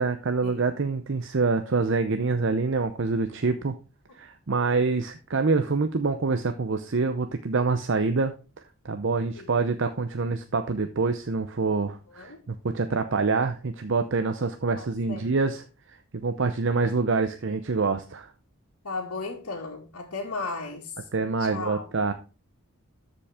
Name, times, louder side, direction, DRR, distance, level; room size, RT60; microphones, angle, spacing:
voice 1, 0.0-3.8 4.2-8.3 8.8-15.6 16.2-18.3 21.1-22.1, right 4 dB, 55° right, 0.6 m, -26 dB
voice 2, 12.1-12.4 14.8-15.3 18.8-21.1 21.4-21.9, left 3 dB, 85° left, 2.0 m, -36 dB
13.0 x 5.2 x 3.6 m
head